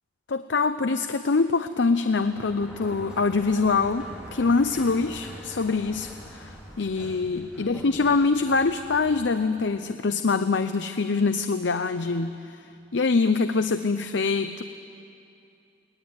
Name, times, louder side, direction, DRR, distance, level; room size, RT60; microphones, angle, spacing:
voice 1, 0.3-12.6 12.9-14.6, left 4 dB, 70° left, 10 dB, 0.6 m, -24 dB
Sliding door, 2.0-9.8, equal, 5° right, 3.8 m, -44 dB
23.0 x 18.5 x 9.7 m, 2.6 s
head